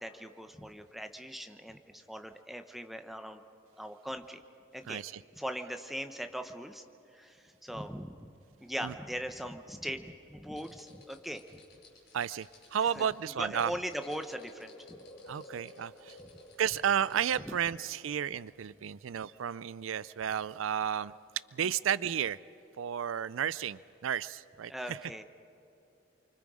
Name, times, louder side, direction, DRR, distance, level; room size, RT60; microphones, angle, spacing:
voice 1, 0.0-3.4 3.8-4.4 4.7-5.0 5.3-6.8 7.1-8.3 8.6-11.6 12.8-15.0 16.2-16.3 17.4-17.5 18.8-18.9 21.6-21.7 24.7-25.2, equal, ahead, 7 dB, 0.9 m, -40 dB
sound 1, 10.5-17.6, left 1 dB, 50° left, 5.3 m, -54 dB
voice 2, 12.1-12.5 12.7-13.7 15.3-16.2 16.6-21.1 21.5-22.4 22.8-25.0, right 8 dB, 75° right, 19 dB, 0.4 m, -32 dB
29.0 x 24.5 x 5.0 m, 2.9 s
head